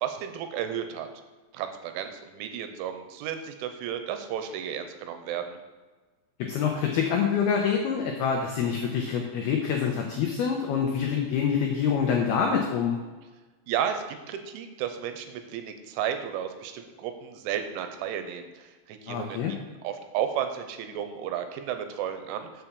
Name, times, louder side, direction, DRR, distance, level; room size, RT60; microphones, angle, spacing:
voice 1, 0.0-1.1 1.5-5.6 13.7-22.6, right 9 dB, 85° right, 7 dB, 3.1 m, -33 dB
voice 2, 6.5-13.0 19.1-19.5, left 7 dB, 90° left, 1 dB, 2.2 m, -26 dB
6.9 x 5.8 x 6.8 m, 1.3 s
omnidirectional pair, 5.6 m